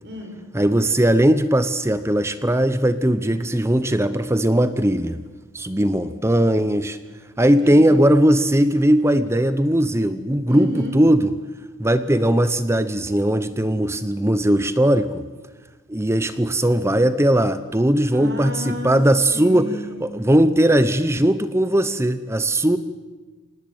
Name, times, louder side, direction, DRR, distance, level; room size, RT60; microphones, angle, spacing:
voice 1, 0.0-0.4 7.4-8.1 10.5-11.0 18.1-19.0 19.3-20.1, left 1 dB, 50° right, 3 dB, 5.8 m, -33 dB
voice 2, 0.5-5.2 5.5-7.0 7.4-11.3 11.8-15.2 15.9-19.7 20.0-22.8, right 1 dB, 10° right, 12 dB, 0.7 m, -19 dB
26.5 x 19.5 x 8.7 m, 1.3 s
head